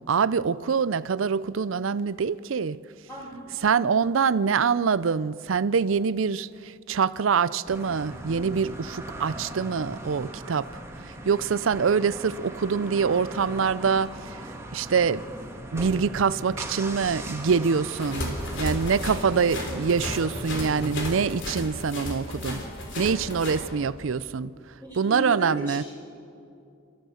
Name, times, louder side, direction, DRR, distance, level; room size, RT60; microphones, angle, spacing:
voice 1, 0.0-2.8 3.6-10.7 11.2-14.4 14.7-15.2 15.7-22.6 23.0-24.5 24.9-25.8, right 6 dB, 70° right, 0.5 m, -25 dB
voice 2, 3.1-3.4 24.8-25.8, right 1 dB, 15° left, 4.0 m, -36 dB
sound 1, 7.7-20.9, right 1 dB, 15° right, 2.0 m, -39 dB
sound 2, 17.9-23.6, left 1 dB, 65° left, 3.8 m, -33 dB
30.0 x 14.5 x 6.4 m
head